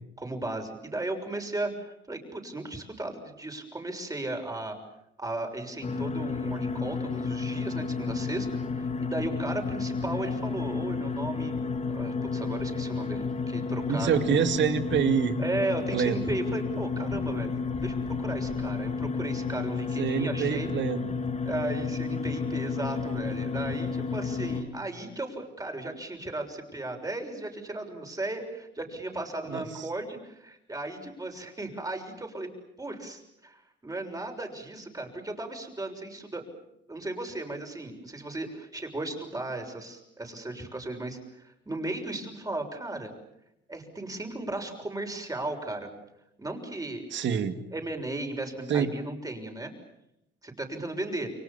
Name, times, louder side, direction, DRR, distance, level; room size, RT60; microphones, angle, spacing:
voice 1, 0.2-4.8 5.2-8.5 8.7-11.5 11.9-14.2 15.4-17.5 17.8-20.7 21.4-32.5 32.8-36.4 36.9-43.1 43.7-45.9 46.4-47.1 47.7-49.7 50.4-51.3, right 2 dB, 20° right, 4 dB, 6.7 m, -35 dB
sound 1, 5.8-24.6, left 4 dB, 35° left, 3.5 m, -31 dB
voice 2, 13.9-15.3 15.9-16.2 20.0-21.1 29.5-29.8 47.1-47.5 48.7-48.9, right 8 dB, 70° right, 8 dB, 2.4 m, -26 dB
29.5 x 24.0 x 7.3 m, 0.82 s
cardioid pair, 90°, 20 cm